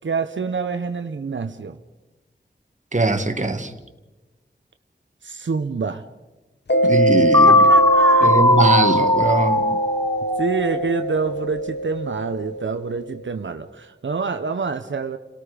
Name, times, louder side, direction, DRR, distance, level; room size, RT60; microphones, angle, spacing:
voice 1, 0.0-1.8 5.2-6.0 6.8-7.0 7.4-8.4 9.7-9.8 10.4-15.2, right 4 dB, 85° right, 8 dB, 0.9 m, -27 dB
voice 2, 2.9-3.7 6.9-7.5 8.2-9.6, right 2 dB, 40° right, 6 dB, 1.8 m, -20 dB
Mallet percussion, 6.7-13.1, right 1 dB, 60° left, 1.3 m, -22 dB
sound 1, 7.3-11.2, left 2 dB, 15° left, 1.0 m, -18 dB
29.5 x 18.0 x 5.1 m, 1.1 s
wide cardioid pair, 70°, 19 cm